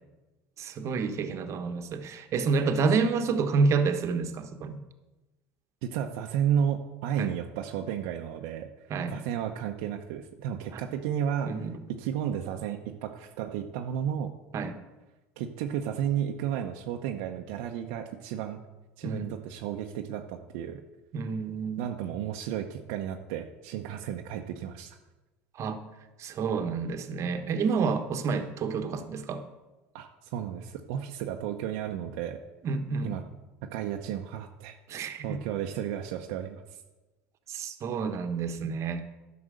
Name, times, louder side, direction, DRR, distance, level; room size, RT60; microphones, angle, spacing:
voice 1, 0.6-4.8 7.2-7.3 8.9-9.2 10.7-10.8 11.5-11.8 14.5-14.7 19.0-19.3 21.1-21.8 25.6-25.8 26.2-29.4 32.6-33.2 34.9-35.4 37.5-39.0, right 5 dB, 45° right, 7 dB, 1.2 m, -29 dB
voice 2, 5.8-8.7 9.1-11.5 11.9-14.3 15.4-18.6 19.0-20.8 21.8-25.0 29.9-32.4 33.0-33.2 33.7-34.8 35.2-36.6, right 9 dB, 70° right, 3 dB, 0.8 m, -32 dB
11.0 x 5.9 x 6.5 m, 1.1 s
hypercardioid pair, 85°, 7 cm